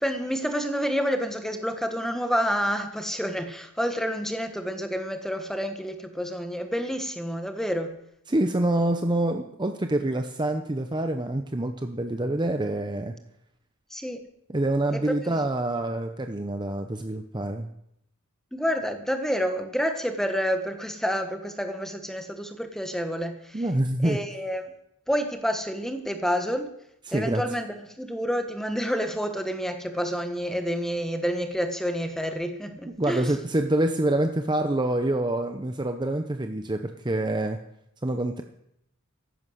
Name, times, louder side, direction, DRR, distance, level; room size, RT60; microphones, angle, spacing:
voice 1, 0.0-7.9 13.9-14.2 14.9-15.4 18.5-23.6 24.0-24.7 25.1-26.7 27.1-33.3, equal, ahead, 7 dB, 1.2 m, -29 dB
voice 2, 8.3-13.1 14.5-17.7 23.5-24.2 27.1-27.4 32.9-37.6 38.0-38.4, right 1 dB, 20° right, 6 dB, 0.7 m, -26 dB
14.5 x 11.0 x 6.4 m, 0.78 s
head